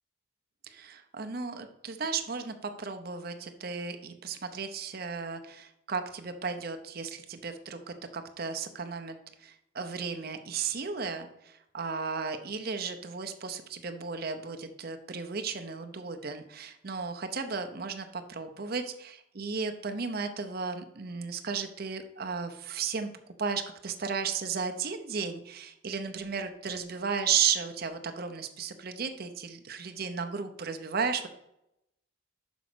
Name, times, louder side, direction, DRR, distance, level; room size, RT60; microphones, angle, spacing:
voice 1, 0.7-18.8 19.4-23.1 23.4-31.3, right 5 dB, 45° right, 7 dB, 0.6 m, -34 dB
6.1 x 5.1 x 6.0 m, 0.82 s
head